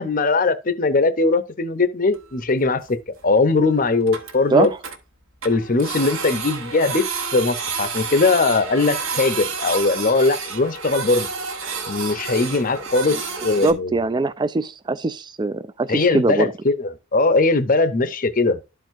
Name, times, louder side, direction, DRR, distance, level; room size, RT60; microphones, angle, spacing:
voice 1, 0.0-3.0 3.2-4.7 5.4-11.3 11.9-14.0 15.9-18.8, left 3 dB, 40° left, 0.7 m, -20 dB
Printer, 2.1-2.2 2.4-2.5 2.9-3.0 3.2-3.3 3.6-3.7 3.9-5.0 5.4-13.7, right 5 dB, 70° right, 1.2 m, -30 dB
voice 2, 13.6-16.5, right 3 dB, 20° right, 0.3 m, -22 dB
12.5 x 4.5 x 2.5 m
head